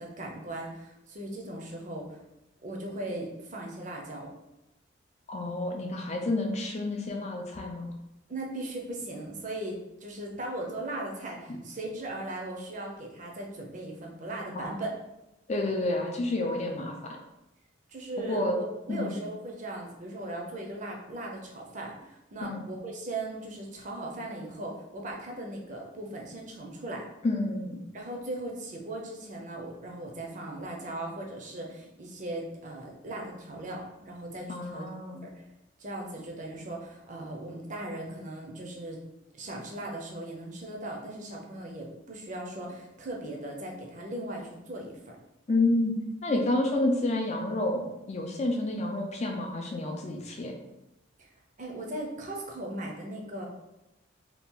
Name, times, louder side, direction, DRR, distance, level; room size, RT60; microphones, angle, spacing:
voice 1, 0.0-2.2 2.6-4.3 8.3-15.0 17.9-27.1 27.9-34.9 35.2-35.5 35.8-39.0 39.4-45.2 51.2-51.3 51.6-53.5, right 1 dB, 40° right, -1 dB, 0.6 m, -38 dB
voice 2, 5.3-7.9 11.5-11.6 14.6-14.7 15.5-17.2 18.3-18.6 18.9-19.1 22.4-22.6 27.2-27.8 34.5-35.2 45.5-46.0 46.2-50.5, left 2 dB, 35° left, 2 dB, 0.4 m, -29 dB
2.8 x 2.4 x 3.6 m, 0.92 s
head